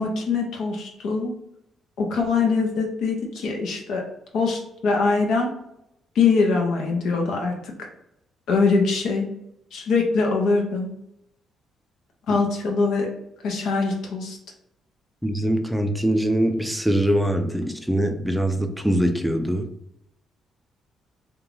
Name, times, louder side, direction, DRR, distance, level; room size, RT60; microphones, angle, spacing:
voice 1, 0.0-1.3 2.0-4.0 4.3-5.5 6.1-7.7 8.5-9.3 9.7-10.9 12.3-13.1 13.4-14.4, left 4 dB, 75° left, 1 dB, 0.5 m, -23 dB
voice 2, 15.2-19.7, right 1 dB, ahead, 5 dB, 0.4 m, -23 dB
2.5 x 2.2 x 3.1 m, 0.81 s
cardioid pair, 90°, 0 cm